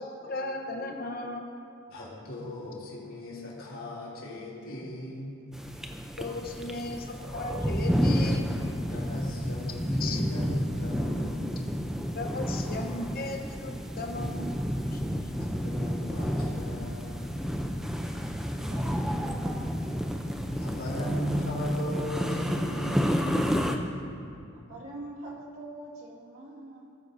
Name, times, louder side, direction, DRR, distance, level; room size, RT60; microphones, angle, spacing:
voice 1, 0.0-1.5 6.2-7.0 7.3-8.5 10.0-10.2 12.1-14.6 14.9-15.0, left 2 dB, 45° left, 2 dB, 0.9 m, -36 dB
voice 2, 1.9-5.4 6.3-6.4 8.9-11.7 15.4-17.2 20.6-23.6, left 1 dB, 75° left, -6 dB, 2.9 m, -36 dB
sound 1, 5.5-23.8, equal, ahead, 0.5 m, -30 dB
voice 3, 18.7-20.1 24.5-27.0, right 2 dB, 70° right, -4 dB, 2.0 m, -44 dB
18.0 x 9.3 x 2.7 m, 2.5 s
head